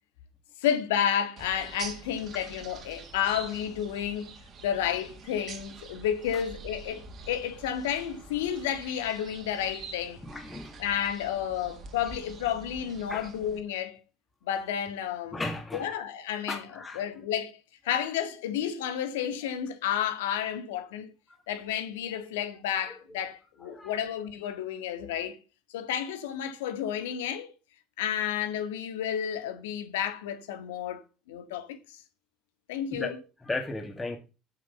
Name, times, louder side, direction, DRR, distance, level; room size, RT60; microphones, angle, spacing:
voice 1, 0.6-4.3 4.6-10.2 10.8-14.0 14.5-15.4 15.7-21.1 21.5-25.4 25.7-27.5 28.0-32.0 32.7-33.2, left 9 dB, 80° left, 1.9 m, -31 dB
sound 1, 1.4-13.6, right 4 dB, 50° right, 2.5 m, -46 dB
voice 2, 10.2-10.8 13.1-13.3 15.3-15.9 16.5-17.0 23.7-23.9 32.9-33.1 33.4-34.2, left 2 dB, 20° left, 2.3 m, -35 dB
8.1 x 7.5 x 6.9 m
hypercardioid pair, 70°, 0 cm